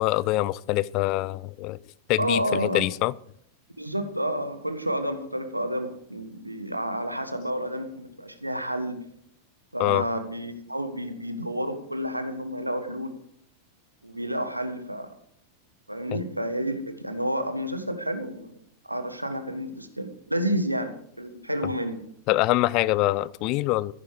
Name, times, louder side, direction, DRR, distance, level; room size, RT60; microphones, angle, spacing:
voice 1, 0.0-1.8 2.1-3.1 9.8-10.0 16.1-16.2 22.3-23.9, left 18 dB, 40° left, 0.4 m, -24 dB
voice 2, 2.2-2.8 3.8-9.0 9.7-13.2 14.0-15.1 15.9-18.5 18.8-22.0, equal, 85° right, 1.4 m, -30 dB
14.0 x 10.0 x 4.8 m
figure-of-eight pair, 90°, 0 cm